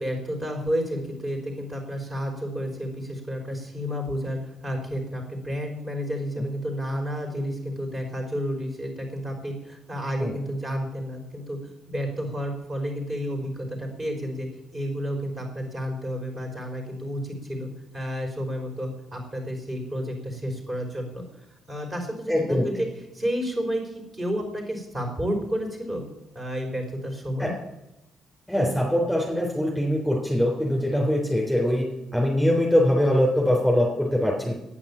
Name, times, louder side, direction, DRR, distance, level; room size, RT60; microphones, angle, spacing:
voice 1, 0.0-11.6 11.9-21.2 21.7-22.9 23.1-26.0 26.3-27.5, equal, 30° right, 2 dB, 5.2 m, -31 dB
voice 2, 22.3-22.7 27.4-27.5 28.5-34.5, left 1 dB, ahead, -1 dB, 3.7 m, -23 dB
10.5 x 9.6 x 8.8 m, 0.93 s
cardioid pair, 90°, 0 cm